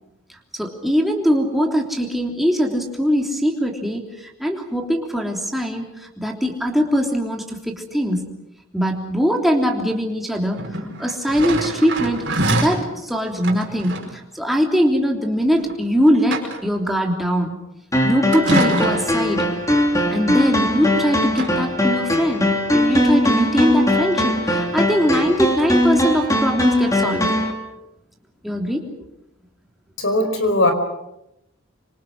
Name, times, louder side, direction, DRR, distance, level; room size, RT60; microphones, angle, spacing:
voice 1, 0.5-4.0 4.4-5.9 6.2-8.3 8.7-10.6 11.0-14.0 14.3-17.6 18.0-19.5 20.1-27.4 28.4-28.8, equal, ahead, 0 dB, 3.3 m, -21 dB
sound 1, 10.6-12.8 13.4-14.1 15.6-15.7 16.1-16.8 18.3-19.2 20.5-21.0 21.3-21.5, right 2 dB, 55° right, 5.0 m, -25 dB
sound 2, 17.9-27.5, left 1 dB, 15° left, 3.3 m, -20 dB
voice 2, 30.0-30.7, left 2 dB, 65° left, 7 dB, 4.9 m, -18 dB
26.0 x 26.0 x 6.2 m, 0.86 s
head